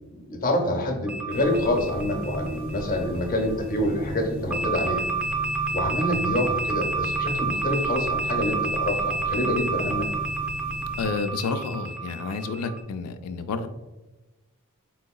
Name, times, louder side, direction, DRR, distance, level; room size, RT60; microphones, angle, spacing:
voice 1, 0.3-5.1 5.7-10.1, left 1 dB, 40° left, 2 dB, 0.7 m, -26 dB
sound 1, 1.1-3.6 4.5-12.8, right 3 dB, 5° right, 0.3 m, -30 dB
sound 2, 1.3-11.1, right 1 dB, 65° right, 1.2 m, -37 dB
voice 2, 11.0-13.7, left 4 dB, 80° left, 8 dB, 0.3 m, -30 dB
4.5 x 3.9 x 2.3 m, 1.1 s
head